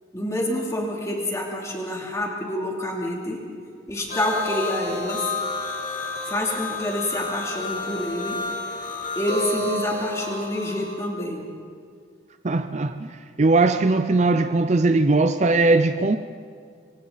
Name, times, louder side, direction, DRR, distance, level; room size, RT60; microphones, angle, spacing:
voice 1, 0.1-3.4 3.9-5.3 6.2-8.4 9.1-11.5, left 1 dB, 15° left, -2 dB, 3.0 m, -27 dB
sound 1, 4.1-10.9, left 2 dB, 50° left, 4.3 m, -30 dB
voice 2, 12.4-16.2, right 3 dB, 35° right, 9 dB, 0.5 m, -20 dB
25.0 x 25.0 x 4.1 m, 2.1 s
head